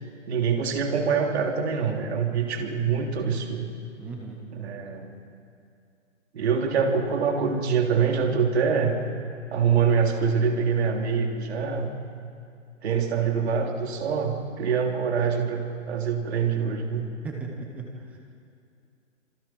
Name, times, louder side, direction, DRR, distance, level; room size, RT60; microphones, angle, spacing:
voice 1, 0.3-3.7 4.5-5.1 6.3-9.0 9.5-11.9 12.8-17.1, right 6 dB, 55° right, 2 dB, 3.3 m, -25 dB
voice 2, 4.0-4.4 17.2-18.2, right 3 dB, 5° right, 0 dB, 0.5 m, -37 dB
26.5 x 25.0 x 4.6 m, 2.5 s
hypercardioid pair, 155°, 39 cm